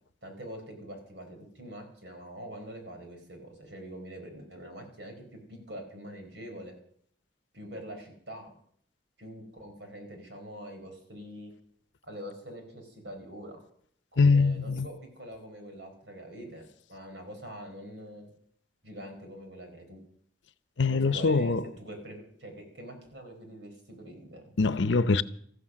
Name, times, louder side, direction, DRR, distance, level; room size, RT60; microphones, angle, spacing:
voice 1, 0.2-6.7 7.5-8.5 9.2-11.5 12.0-13.6 14.1-18.3 18.8-20.0 20.9-24.5, equal, 75° right, 4.8 m, -44 dB
voice 2, 14.2-14.9 20.8-21.6 24.6-25.2, left 4 dB, 90° left, 0.7 m, -23 dB
14.0 x 13.0 x 6.4 m
head